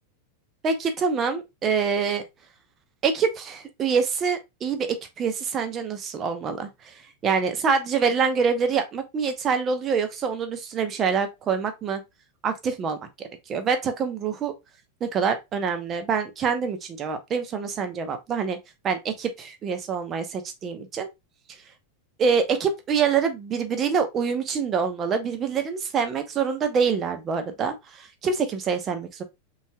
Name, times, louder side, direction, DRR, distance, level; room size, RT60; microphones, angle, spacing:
voice 1, 0.6-2.2 3.0-12.0 12.4-14.5 15.0-18.6 18.8-21.1 22.2-29.2, right 6 dB, 25° right, 0.8 m, -26 dB
5.4 x 3.3 x 2.2 m
figure-of-eight pair, 90°, 0 cm